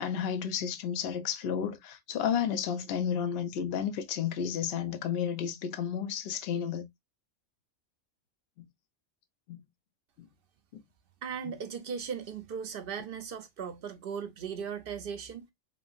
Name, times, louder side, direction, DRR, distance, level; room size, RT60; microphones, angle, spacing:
voice 1, 0.0-6.9 8.6-8.7 9.5-9.6 10.7-10.8 11.4-11.5, left 8 dB, 60° left, 0.7 m, -32 dB
voice 2, 11.2-15.5, right 7 dB, 65° right, 0.6 m, -37 dB
3.1 x 2.6 x 2.3 m
omnidirectional pair, 1.4 m